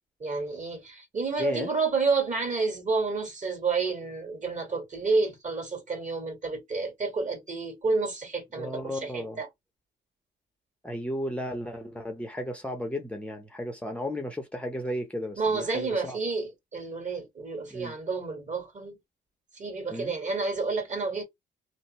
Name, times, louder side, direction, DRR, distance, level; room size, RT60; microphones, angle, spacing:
voice 1, 0.2-9.5 15.4-19.0 19.5-21.2, right 4 dB, 40° right, 1.7 m, -30 dB
voice 2, 1.4-1.7 8.6-9.4 10.8-16.2 17.7-17.9 19.9-20.1, left 1 dB, 5° left, 0.7 m, -34 dB
2.7 x 2.0 x 3.0 m
cardioid pair, 90°, 20 cm